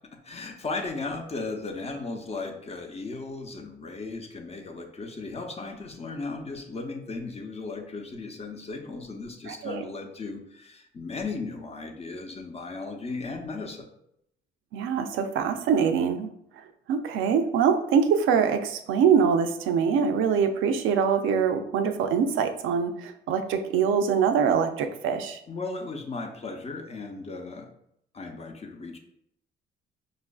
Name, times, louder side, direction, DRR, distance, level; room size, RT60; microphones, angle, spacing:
voice 1, 0.1-13.9 25.5-27.7 28.1-29.0, left 3 dB, 30° left, 3 dB, 0.6 m, -36 dB
voice 2, 9.5-9.9 14.7-25.4, right 6 dB, 85° right, 7 dB, 0.4 m, -24 dB
5.1 x 2.4 x 2.3 m, 0.75 s
cardioid pair, 90°, 20 cm